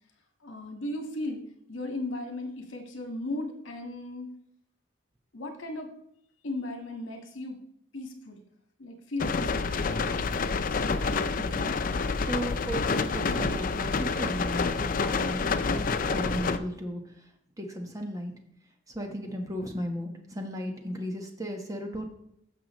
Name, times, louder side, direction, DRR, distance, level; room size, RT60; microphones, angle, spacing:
voice 1, 0.4-1.4 1.7-4.3 5.3-5.9 6.4-7.6 7.9-8.4 8.8-9.8, left 2 dB, 80° left, 4 dB, 1.8 m, -36 dB
sound 1, 9.2-16.6, left 4 dB, 45° left, 0.4 m, -28 dB
voice 2, 11.4-11.7 12.2-17.1 17.6-18.4 18.9-22.0, equal, 15° right, 3 dB, 1.2 m, -35 dB
15.0 x 5.9 x 3.1 m, 0.73 s
head